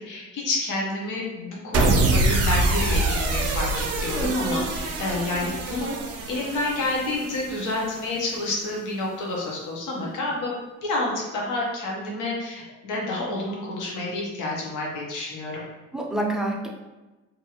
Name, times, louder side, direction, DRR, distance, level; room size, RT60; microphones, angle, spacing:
voice 1, 0.1-6.0 6.3-10.5 10.8-15.5, left 2 dB, 90° left, -3 dB, 0.8 m, -29 dB
sound 1, 1.7-8.1, right 2 dB, 55° right, 0.5 m, -25 dB
voice 2, 4.1-4.7 15.9-16.7, right 2 dB, ahead, -1 dB, 0.4 m, -27 dB
2.6 x 2.4 x 2.8 m, 1.1 s
cardioid pair, 90°, 30 cm